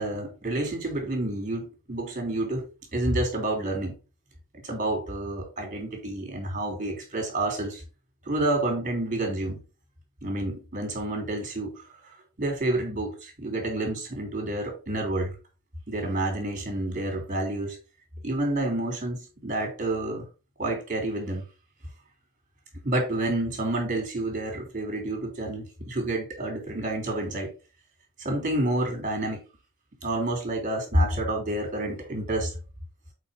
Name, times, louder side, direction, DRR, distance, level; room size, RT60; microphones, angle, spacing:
voice 1, 0.0-2.6 2.9-3.9 4.6-7.8 8.3-9.6 10.2-11.8 12.4-15.3 15.9-17.8 18.2-20.2 20.6-21.4 22.8-27.5 28.2-29.4 30.0-32.5, right 1 dB, 35° right, 3.3 m, -29 dB
7.8 x 4.6 x 3.9 m
head